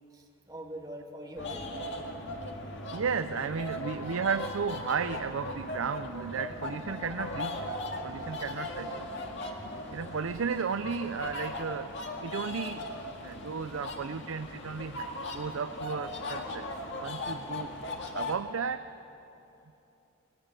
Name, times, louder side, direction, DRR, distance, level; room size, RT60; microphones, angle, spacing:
voice 1, 0.1-2.0 8.8-9.4, right 1 dB, 20° right, -1 dB, 2.4 m, -44 dB
sound 1, 1.4-18.3, left 1 dB, 60° left, 2.0 m, -38 dB
voice 2, 2.9-7.7 8.0-9.1 9.9-11.9 12.2-12.8 13.2-15.1 15.3-16.7 17.0-17.7 18.1-18.9, right 6 dB, 75° right, 11 dB, 0.5 m, -34 dB
20.0 x 17.0 x 8.9 m, 2.9 s
head